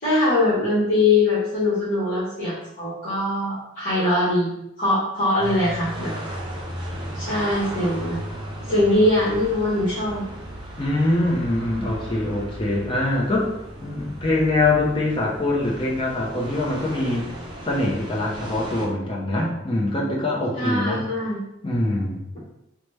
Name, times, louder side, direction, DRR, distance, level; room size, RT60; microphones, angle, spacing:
voice 1, 0.0-6.1 7.1-8.2 8.7-10.2 20.6-21.4, left 2 dB, 45° left, -11 dB, 1.1 m, -22 dB
sound 1, 5.4-18.9, equal, 25° right, 0.5 m, -36 dB
voice 2, 10.8-13.5 13.8-17.3 17.6-21.1 21.6-22.2, left 2 dB, 25° left, -3 dB, 0.6 m, -23 dB
3.0 x 2.1 x 3.2 m, 0.84 s
head